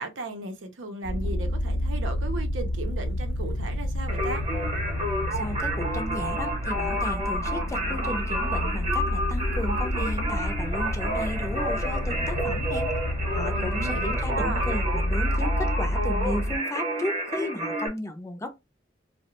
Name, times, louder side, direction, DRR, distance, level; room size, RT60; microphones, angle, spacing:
voice 1, 0.0-4.4 13.5-14.7, right 2 dB, 90° right, 0.6 m, -36 dB
sound 1, 1.0-16.6, left 1 dB, 70° left, 0.5 m, -29 dB
Singing, 4.1-17.9, right 1 dB, 35° right, 0.8 m, -30 dB
voice 2, 5.3-12.9 13.3-18.5, left 1 dB, 15° left, 0.4 m, -34 dB
2.4 x 2.0 x 2.9 m
head